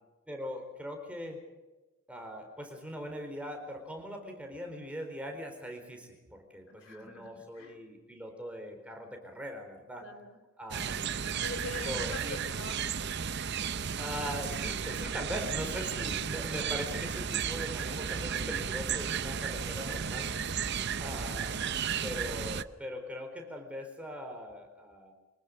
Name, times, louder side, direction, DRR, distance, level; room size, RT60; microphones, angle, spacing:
voice 1, 0.3-1.4 2.1-10.1 10.6-11.2 11.8-12.4 14.0-20.3 21.0-21.6 22.0-25.1, equal, 5° right, 3 dB, 4.4 m, -41 dB
voice 2, 6.7-7.8 10.0-10.4 11.4-12.9 20.4-21.1, left 3 dB, 65° left, 9 dB, 3.2 m, -44 dB
sound 1, 10.7-22.6, right 7 dB, 50° right, 0.7 m, -34 dB
25.0 x 19.5 x 6.7 m, 1.1 s
head